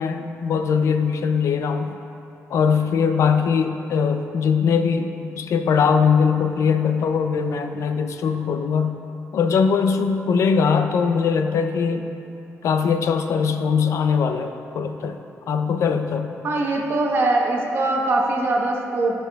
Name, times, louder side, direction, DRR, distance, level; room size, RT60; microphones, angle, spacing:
voice 1, 0.0-2.0 2.5-9.0 9.3-12.1 12.6-15.2 15.5-16.3, left 6 dB, 70° left, 7 dB, 0.4 m, -21 dB
voice 2, 16.4-19.2, right 2 dB, 45° right, -1 dB, 1.0 m, -22 dB
13.0 x 5.5 x 2.3 m, 2.7 s
wide cardioid pair, 145°, 5 cm